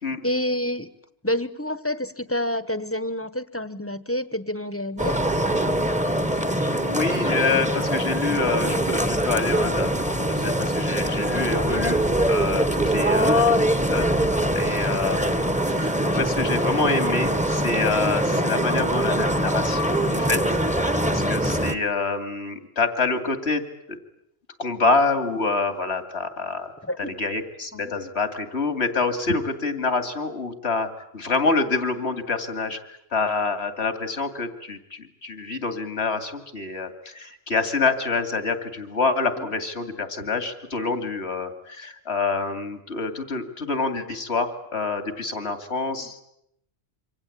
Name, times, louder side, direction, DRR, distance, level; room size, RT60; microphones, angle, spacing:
voice 1, 0.2-0.9 1.2-5.2 26.8-27.2 27.7-27.8 39.4-39.5 46.0-46.1, left 1 dB, 15° left, 14 dB, 1.2 m, -28 dB
sound 1, 5.0-21.7, right 1 dB, 5° right, 1.3 m, -23 dB
voice 2, 6.8-14.1 14.5-20.4 21.1-24.0 24.6-46.2, left 4 dB, 85° left, 9 dB, 2.8 m, -27 dB
27.0 x 25.0 x 8.6 m, 0.76 s
omnidirectional pair, 1.1 m